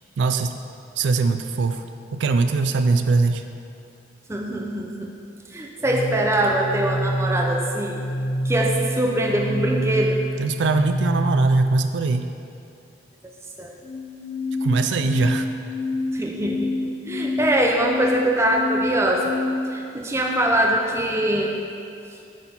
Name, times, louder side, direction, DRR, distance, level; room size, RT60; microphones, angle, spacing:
voice 1, 0.2-0.5 1.0-1.8 2.1-3.4 10.4-12.3 14.6-15.5, right 3 dB, 70° right, 8 dB, 0.4 m, -21 dB
voice 2, 4.3-5.1 5.5-8.0 8.4-10.2 13.6-13.7 16.1-16.7 17.1-19.4 19.7-21.6, right 1 dB, 15° right, 0 dB, 0.6 m, -23 dB
sound 1, 5.8-11.8 13.8-19.8, left 1 dB, 30° left, 0.6 m, -27 dB
9.5 x 4.4 x 5.5 m, 2.5 s
head